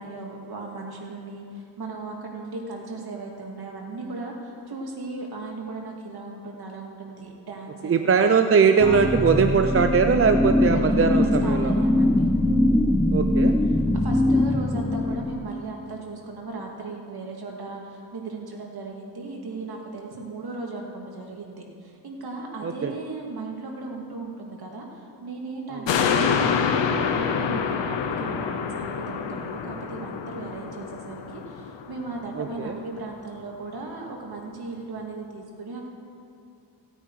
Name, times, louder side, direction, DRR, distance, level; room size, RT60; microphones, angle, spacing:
voice 1, 0.0-9.5 10.7-12.3 13.6-35.9, right 3 dB, 60° right, 0 dB, 2.3 m, -37 dB
voice 2, 7.8-11.7 13.1-13.5 22.6-22.9 32.4-32.7, right 5 dB, 30° right, 6 dB, 0.5 m, -20 dB
sound 1, 8.8-15.5, left 1 dB, 5° left, 0.7 m, -22 dB
sound 2, 25.9-32.5 32.9-33.0, left 6 dB, 85° left, 0.9 m, -27 dB
16.5 x 8.9 x 4.8 m, 2.6 s
cardioid pair, 90°, 43 cm